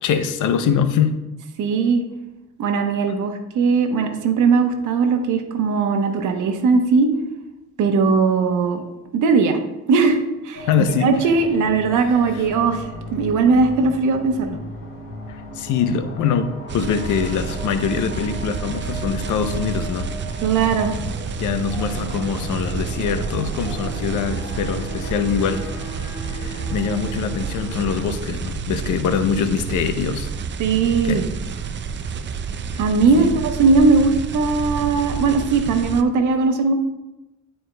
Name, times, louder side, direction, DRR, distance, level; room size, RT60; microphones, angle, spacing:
voice 1, 0.0-1.2 10.7-11.1 12.0-12.1 12.3-12.4 15.3-20.1 21.4-25.6 26.2-30.3 31.0-31.2 32.7-32.8 33.2-33.4, left 7 dB, 80° left, 9 dB, 0.7 m, -23 dB
voice 2, 1.6-2.0 2.6-7.1 7.8-8.8 9.1-9.6 9.9-10.2 10.4-14.6 20.4-20.9 30.6-31.3 32.8-36.7, right 4 dB, 85° right, 6 dB, 0.9 m, -19 dB
sound 1, 10.5-28.1, equal, 45° left, 2.1 m, -36 dB
sound 2, 16.7-36.0, right 6 dB, 40° right, 0.5 m, -29 dB
11.0 x 4.5 x 2.2 m, 0.98 s
cardioid pair, 90°, 30 cm